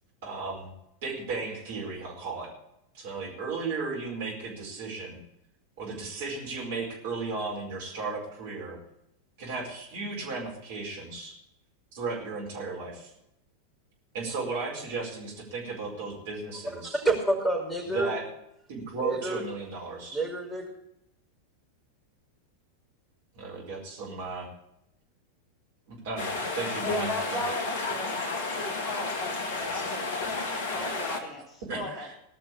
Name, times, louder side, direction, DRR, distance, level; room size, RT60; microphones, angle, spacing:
voice 1, 0.2-0.7 1.0-2.5 2.9-5.2 5.8-8.8 9.4-11.4 11.9-13.1 14.1-17.0 17.8-18.2 18.7-20.2 23.3-24.5 25.9-27.4 31.7-32.1, right 4 dB, 55° right, -2 dB, 5.0 m, -35 dB
voice 2, 16.7-18.1 18.9-19.4 20.1-20.7, right 2 dB, 5° left, 1 dB, 5.2 m, -28 dB
sound 1, 26.2-31.2, left 3 dB, 50° left, 1.9 m, -32 dB
voice 3, 26.9-32.1, left 1 dB, 30° left, 2 dB, 2.6 m, -36 dB
18.5 x 6.1 x 8.4 m, 0.80 s
figure-of-eight pair, 90°, 0 cm